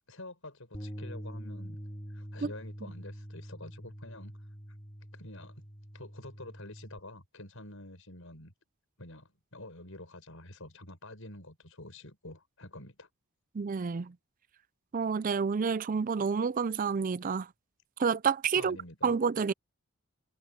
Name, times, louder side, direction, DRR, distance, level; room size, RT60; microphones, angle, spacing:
voice 1, 0.1-1.8 2.1-4.8 5.1-5.6 5.9-8.5 9.0-13.1 18.6-19.1, left 1 dB, 65° left, 6.7 m, -48 dB
Bass guitar, 0.7-7.0, equal, 20° left, 2.4 m, -45 dB
voice 2, 13.5-14.1 14.9-17.5 18.0-18.8 19.0-19.5, right 5 dB, 35° right, 0.4 m, -29 dB
head